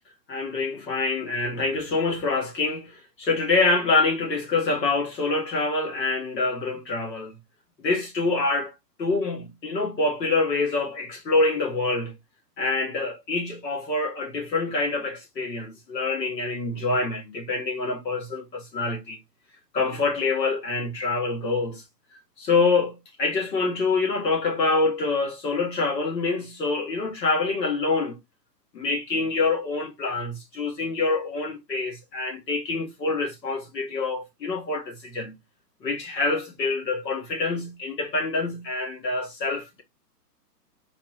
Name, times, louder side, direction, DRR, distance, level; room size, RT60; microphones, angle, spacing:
voice 1, 0.3-7.3 7.8-8.7 9.0-12.1 12.6-19.2 19.7-21.8 22.4-28.2 28.7-35.4 35.8-39.8, left 3 dB, 85° left, 2.0 m, -26 dB
4.2 x 2.7 x 3.1 m
hypercardioid pair, 160°, 49 cm